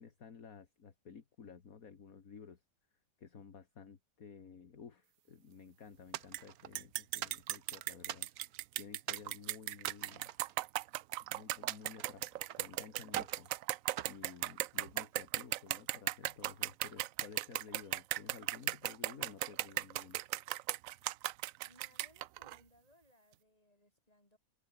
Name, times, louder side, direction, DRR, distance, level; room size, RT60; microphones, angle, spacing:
voice 1, 0.0-2.6 3.2-10.3 11.2-13.5 14.1-20.2, left 6 dB, 50° left, 2.2 m, -53 dB
sound 1, 6.1-6.8 7.2-8.6 9.1-9.3 9.8-11.1 11.7-12.7 13.1-13.5 14.0-15.0, right 11 dB, 60° right, 1.2 m, -44 dB
sound 2, 6.3-6.4 6.8-22.6, right 15 dB, 85° right, 0.7 m, -37 dB
voice 2, 21.6-24.4, left 1 dB, 20° left, 6.5 m, -66 dB
omnidirectional pair, 1.9 m